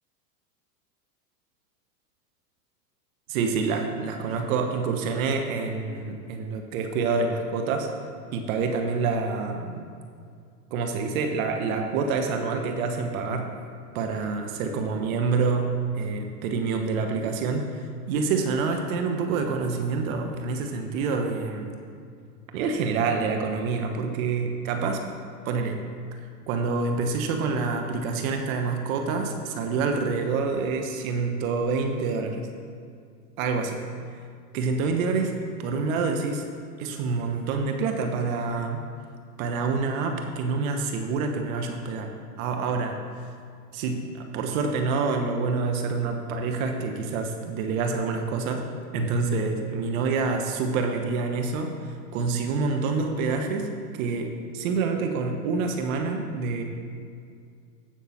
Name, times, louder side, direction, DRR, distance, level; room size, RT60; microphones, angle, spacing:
voice 1, 3.3-7.9 8.3-9.9 10.7-13.5 13.9-17.7 18.1-21.7 22.5-25.0 25.4-25.8 26.5-32.5 33.4-33.8 34.5-36.4 36.8-38.8 39.4-42.1 42.4-43.0 43.7-48.7 48.9-56.6, right 4 dB, 55° right, 4 dB, 1.2 m, -27 dB
15.0 x 6.0 x 4.2 m, 2.3 s
hypercardioid pair, 110°, 48 cm